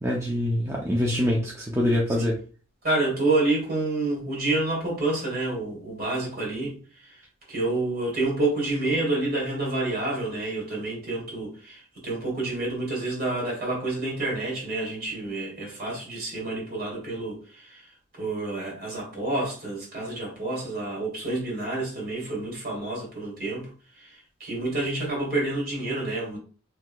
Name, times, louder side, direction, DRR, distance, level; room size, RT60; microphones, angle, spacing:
voice 1, 0.0-2.4, left 1 dB, 15° right, 0.5 m, -25 dB
voice 2, 2.8-7.2 7.5-17.9 18.2-23.7 24.0-26.4, right 2 dB, 50° right, 2.0 m, -28 dB
4.6 x 3.5 x 2.3 m
head